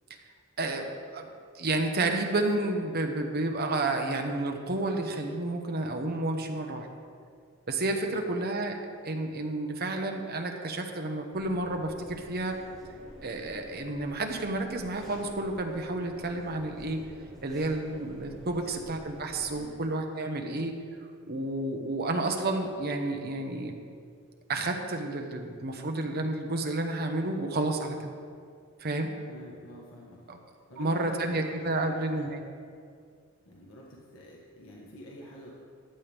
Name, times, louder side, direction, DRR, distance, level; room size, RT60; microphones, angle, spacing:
voice 1, 0.6-6.9 7.7-8.8 9.0-12.6 13.2-17.0 17.4-20.7 21.3-23.7 24.5-28.0 28.8-29.1 30.3-30.4 30.8-32.4, right 2 dB, 50° right, 3 dB, 1.1 m, -31 dB
voice 2, 8.0-8.4 18.5-18.9 19.5-19.8 29.3-30.4 30.7-32.3 33.4-35.5, left 1 dB, 85° left, -4 dB, 1.6 m, -48 dB
sound 1, 11.3-19.6, equal, ahead, 3.0 m, -49 dB
14.5 x 9.9 x 3.6 m, 2.2 s
head